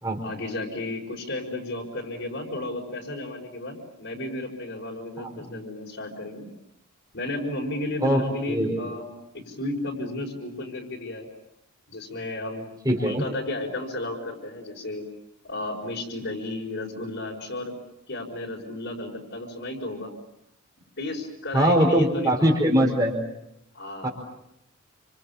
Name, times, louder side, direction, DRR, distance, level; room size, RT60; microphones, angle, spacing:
voice 1, 0.2-6.5 7.1-9.0 9.5-11.3 11.9-15.0 15.4-17.7 18.1-20.1 21.0-22.4 23.7-24.1, left 2 dB, 55° left, -1 dB, 5.5 m, -33 dB
voice 2, 12.8-13.2 21.5-23.1 24.0-24.1, equal, 15° right, 0 dB, 4.8 m, -21 dB
29.5 x 26.5 x 7.2 m, 0.80 s
head